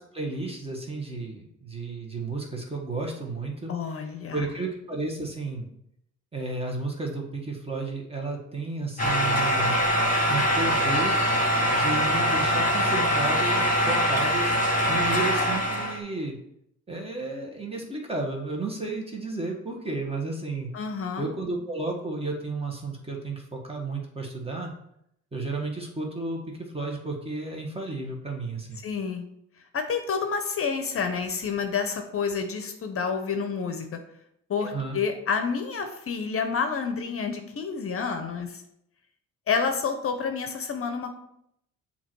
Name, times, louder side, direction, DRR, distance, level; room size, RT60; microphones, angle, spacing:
voice 1, 0.0-4.0 4.3-5.7 6.3-9.8 10.3-11.3 11.7-14.5 14.9-16.4 16.9-20.7 21.2-24.7 25.3-28.8 34.6-35.0, right 3 dB, 20° right, 0 dB, 1.5 m, -32 dB
voice 2, 3.7-4.4 20.7-21.3 28.8-29.2 29.7-33.9 34.5-38.6 39.5-41.1, left 5 dB, 45° left, 6 dB, 0.7 m, -29 dB
sound 1, 9.0-16.0, equal, 25° left, 1.8 m, -23 dB
7.3 x 2.9 x 4.5 m, 0.76 s
cardioid pair, 90°, 30 cm